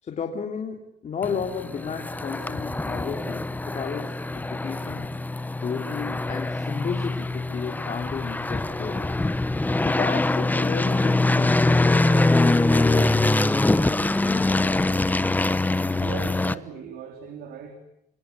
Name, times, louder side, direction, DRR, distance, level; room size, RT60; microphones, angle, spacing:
voice 1, 0.0-5.1 5.6-9.1 9.8-12.3 12.7-13.2, left 6 dB, 40° left, 3 dB, 3.1 m, -33 dB
sound 1, 1.2-16.5, left 2 dB, 10° left, 1.0 m, -23 dB
voice 2, 16.0-17.8, right 7 dB, 70° right, 6 dB, 3.6 m, -38 dB
26.5 x 25.5 x 8.4 m, 0.81 s
cardioid pair, 110°, 17 cm